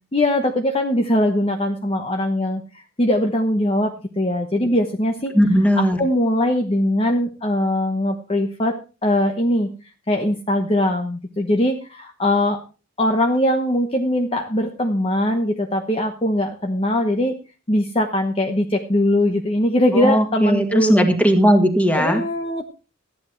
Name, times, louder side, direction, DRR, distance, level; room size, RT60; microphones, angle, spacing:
voice 1, 0.1-2.6 3.0-5.3 5.8-8.8 9.0-9.7 10.1-12.6 13.0-17.4 17.7-21.0 21.9-22.6, left 1 dB, 25° left, 3 dB, 1.1 m, -21 dB
voice 2, 5.3-6.0 19.9-22.2, equal, 5° left, 5 dB, 2.0 m, -17 dB
14.0 x 10.5 x 4.5 m, 0.33 s
head